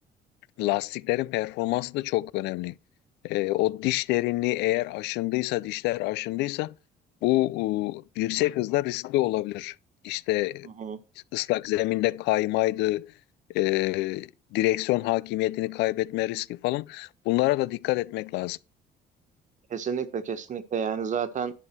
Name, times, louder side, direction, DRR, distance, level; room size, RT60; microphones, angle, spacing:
voice 1, 0.6-2.7 3.2-6.7 7.2-9.7 10.0-10.7 11.3-13.1 13.5-18.6, left 18 dB, 85° left, 0.4 m, -27 dB
voice 2, 10.6-11.0 19.7-21.5, right 7 dB, 45° right, 1.5 m, -30 dB
11.0 x 5.6 x 6.0 m
cardioid pair, 110°, 17 cm